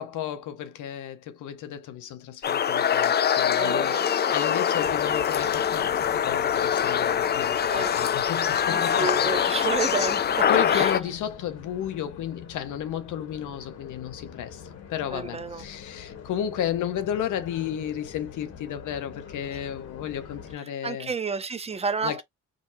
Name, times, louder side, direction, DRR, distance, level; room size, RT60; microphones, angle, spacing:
voice 1, 0.0-9.3 10.5-21.1 22.0-22.2, left 10 dB, 80° left, 0.9 m, -33 dB
sound 1, 2.4-11.0, left 8 dB, 35° left, 0.4 m, -24 dB
voice 2, 3.6-4.3 7.7-7.9 8.7-10.9 15.1-15.6 20.8-22.2, right 4 dB, 20° right, 0.7 m, -31 dB
sound 2, 4.8-20.6, left 7 dB, 55° left, 1.3 m, -45 dB
5.2 x 2.0 x 2.7 m
cardioid pair, 90°, 30 cm